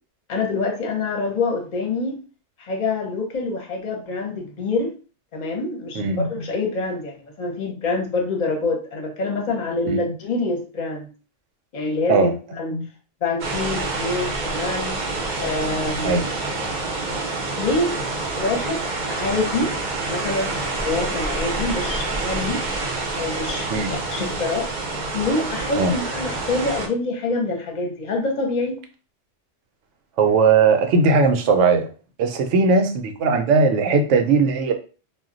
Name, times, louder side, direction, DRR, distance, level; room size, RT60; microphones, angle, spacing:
voice 1, 0.3-2.2 2.6-4.9 5.3-11.1 11.7-12.9 13.2-15.0 15.4-16.3 17.6-18.0 18.4-18.8 19.1-19.7 20.1-20.5 20.8-22.6 23.2-24.7 25.1-28.8, left 3 dB, 45° left, 2 dB, 0.7 m, -26 dB
sound 1, 13.4-26.9, right 3 dB, 50° right, 0.6 m, -27 dB
voice 2, 30.2-31.9 32.2-34.7, right 4 dB, 80° right, 6 dB, 0.9 m, -18 dB
2.2 x 2.1 x 3.7 m, 0.36 s
omnidirectional pair, 1.3 m